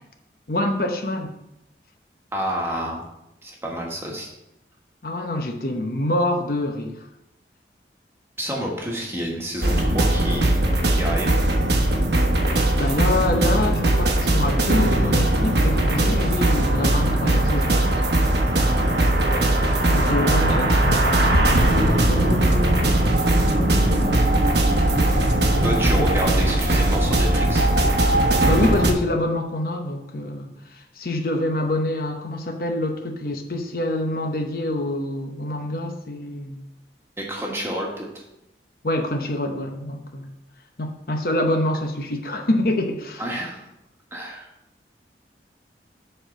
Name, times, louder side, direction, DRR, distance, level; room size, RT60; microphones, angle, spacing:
voice 1, 0.5-1.3 5.0-6.9 11.3-11.4 12.7-18.0 19.9-24.2 24.9-26.1 28.3-36.6 38.8-40.3 40.8-43.2, left 1 dB, 55° left, 4 dB, 0.9 m, -26 dB
voice 2, 2.3-3.0 3.4-4.3 8.4-11.4 25.6-27.7 37.2-38.2 43.2-43.7 44.1-44.5, equal, 15° right, -1 dB, 1.5 m, -29 dB
sound 1, 9.6-28.9, right 1 dB, 75° right, 1.0 m, -19 dB
7.6 x 4.4 x 6.4 m, 0.86 s
head